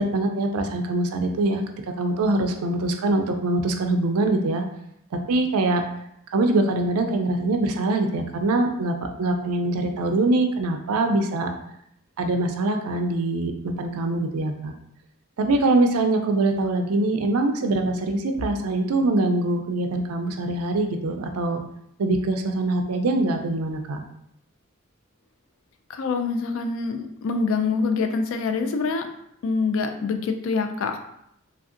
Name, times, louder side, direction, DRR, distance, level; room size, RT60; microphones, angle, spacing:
voice 1, 0.0-1.6 2.0-4.6 5.3-5.8 6.3-11.5 12.2-14.7 15.4-21.6 22.0-24.0, right 2 dB, 90° right, 5 dB, 0.4 m, -23 dB
voice 2, 25.9-29.1 29.4-31.0, left 4 dB, 65° left, 7 dB, 0.3 m, -25 dB
3.1 x 2.6 x 2.4 m, 0.75 s
head